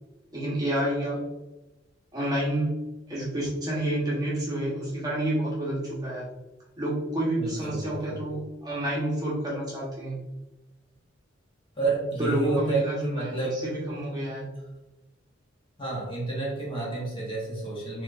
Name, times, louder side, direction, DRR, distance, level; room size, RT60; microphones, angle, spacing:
voice 1, 0.3-1.3 2.1-6.3 6.8-10.2 12.2-13.3 13.6-14.5, right 1 dB, 20° right, -6 dB, 1.0 m, -29 dB
voice 2, 7.4-8.2 11.8-13.6 15.8-18.0, right 3 dB, 25° left, -5 dB, 1.3 m, -30 dB
4.2 x 3.3 x 2.5 m, 1.0 s
head